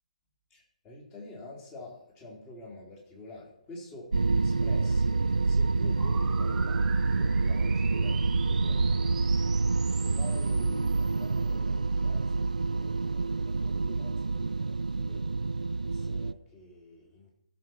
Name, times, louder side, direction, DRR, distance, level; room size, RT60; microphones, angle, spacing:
voice 1, 0.5-5.2 5.4-15.3 15.8-17.3, left 2 dB, 20° left, -2 dB, 3.7 m, -48 dB
sound 1, 4.1-16.3, right 3 dB, 70° right, 0.3 m, -27 dB
sound 2, 6.0-11.5, right 6 dB, 10° right, 0.6 m, -44 dB
15.5 x 7.1 x 4.6 m, 0.76 s
figure-of-eight pair, 130°, 4 cm